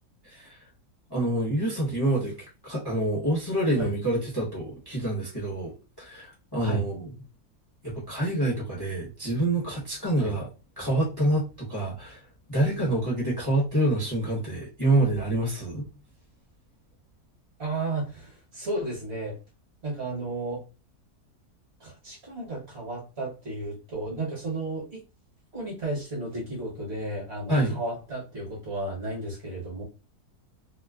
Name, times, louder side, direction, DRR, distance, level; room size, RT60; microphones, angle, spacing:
voice 1, 0.2-0.6 1.1-2.4 2.6-5.7 6.0-7.1 7.8-10.5 10.8-12.2 12.5-15.9 27.5-27.8, right 1 dB, 20° left, 0.8 m, -27 dB
voice 2, 17.6-19.4 19.8-20.6 21.8-25.0 25.5-29.8, right 2 dB, 45° right, 1.3 m, -33 dB
3.0 x 2.1 x 2.3 m
omnidirectional pair, 1.6 m